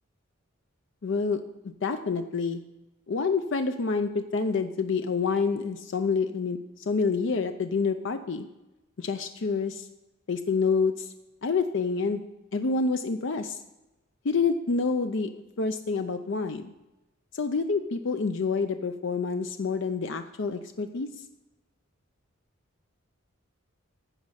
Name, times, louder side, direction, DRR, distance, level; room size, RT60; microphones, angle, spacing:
voice 1, 1.0-2.6 3.1-8.5 9.0-9.9 10.3-11.1 11.4-12.2 12.5-13.6 14.2-15.3 15.6-16.7 17.3-21.1, left 4 dB, 55° left, 8 dB, 0.5 m, -28 dB
15.0 x 5.2 x 5.6 m, 1.0 s
head